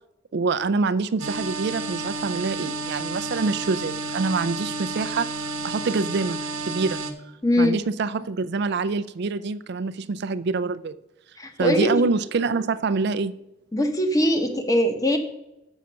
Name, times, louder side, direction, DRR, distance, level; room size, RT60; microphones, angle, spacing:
voice 1, 0.3-6.4 6.7-7.0 7.6-10.9 11.6-13.3, right 4 dB, 55° right, 13 dB, 0.4 m, -26 dB
sound 1, 1.2-7.1, right 3 dB, 90° right, 0.9 m, -31 dB
voice 2, 7.4-7.8 11.4-11.9 13.7-15.2, equal, 15° left, 6 dB, 0.9 m, -21 dB
7.1 x 5.6 x 6.3 m, 0.90 s
head